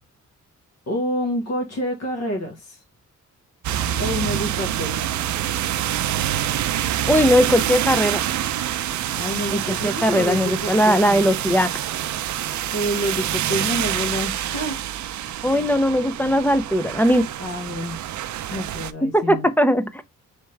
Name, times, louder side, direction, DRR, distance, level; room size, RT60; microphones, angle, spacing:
voice 1, 0.9-2.8 4.0-5.0 9.2-11.2 12.7-14.8 15.1-15.5 17.4-18.0 18.5-19.5, equal, 55° left, 1.2 m, -28 dB
sound 1, 3.6-18.9, right 11 dB, 70° right, 0.5 m, -26 dB
voice 2, 7.1-8.2 9.8-11.7 15.4-17.2 19.0-20.0, equal, 5° left, 0.3 m, -19 dB
4.4 x 3.4 x 3.2 m
wide cardioid pair, 150°, 31 cm